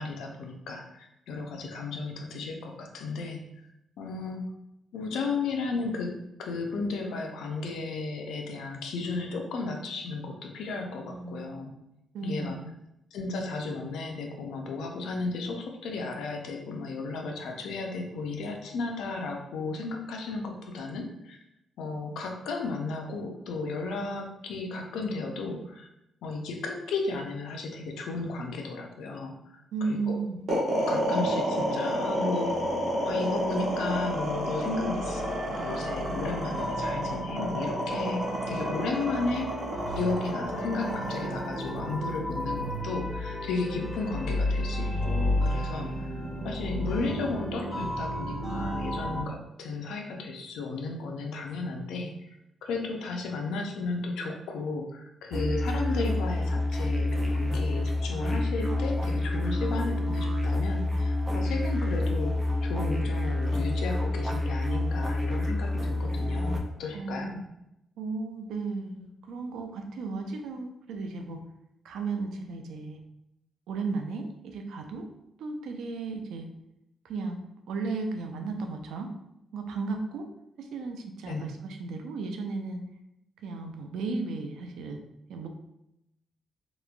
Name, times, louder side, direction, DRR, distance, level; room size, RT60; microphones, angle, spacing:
voice 1, 0.0-3.4 4.0-4.4 4.9-11.7 12.2-12.6 13.1-21.4 21.8-25.9 26.2-29.6 29.9-30.2 30.7-32.7 33.0-39.5 39.9-46.1 46.4-52.3 52.6-67.4 81.3-81.5, left 3 dB, 85° left, 2 dB, 0.4 m, -34 dB
voice 2, 11.1-11.6 12.1-12.7 29.7-30.5 66.9-67.3 68.0-71.4 71.8-73.0 73.7-75.1 75.4-76.5 77.0-77.4 77.7-79.1 79.5-80.3 80.6-82.8 83.4-85.0 85.3-85.5, right 4 dB, 90° right, 5 dB, 0.3 m, -34 dB
sound 1, 30.5-42.7, equal, 60° right, 1.1 m, -30 dB
sound 2, 32.4-49.2, left 1 dB, 20° left, 0.9 m, -33 dB
sound 3, 55.3-66.6, left 2 dB, 15° right, 0.4 m, -28 dB
2.9 x 2.1 x 2.4 m, 0.86 s
cardioid pair, 110°, 0 cm